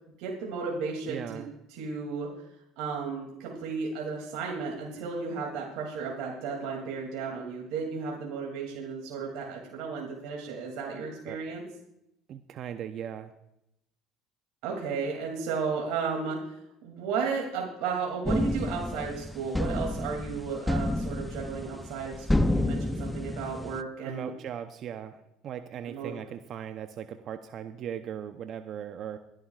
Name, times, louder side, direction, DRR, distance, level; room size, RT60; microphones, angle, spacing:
voice 1, 0.2-1.4 1.7-2.3 2.8-11.6 14.6-24.3 25.9-26.1, right 5 dB, 75° right, -1 dB, 2.6 m, -34 dB
voice 2, 1.1-1.5 11.3-11.4 12.3-13.3 24.0-29.2, right 9 dB, 55° right, 8 dB, 0.7 m, -38 dB
sound 1, 18.2-23.8, left 1 dB, 10° left, 0.5 m, -30 dB
24.0 x 11.0 x 2.4 m, 0.82 s
supercardioid pair, 95°, 0 cm